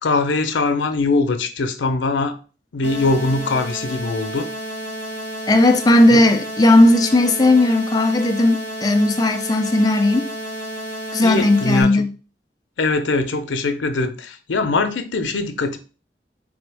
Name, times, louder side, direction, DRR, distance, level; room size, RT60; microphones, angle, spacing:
voice 1, 0.0-2.4 2.7-4.5 6.1-6.2 11.2-12.0 12.8-15.8, left 3 dB, 85° left, 0.6 m, -22 dB
sound 1, 2.8-11.8, right 1 dB, 70° right, 1.9 m, -31 dB
voice 2, 5.5-10.3 11.1-12.1, left 1 dB, 20° left, 0.4 m, -15 dB
3.9 x 3.4 x 3.4 m
head